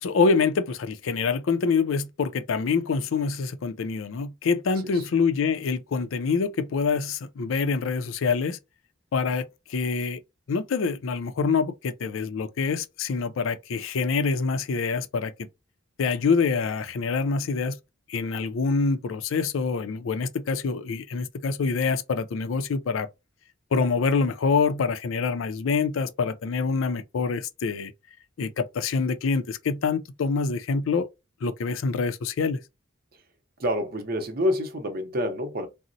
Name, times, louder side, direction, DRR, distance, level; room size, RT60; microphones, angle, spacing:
voice 1, 0.0-8.6 9.1-10.2 10.5-15.5 16.0-17.8 18.1-23.1 23.7-27.9 28.4-31.1 31.4-32.6, left 4 dB, 90° left, 0.4 m, -26 dB
voice 2, 33.6-35.7, left 1 dB, 50° right, 0.7 m, -27 dB
3.9 x 2.0 x 2.6 m
head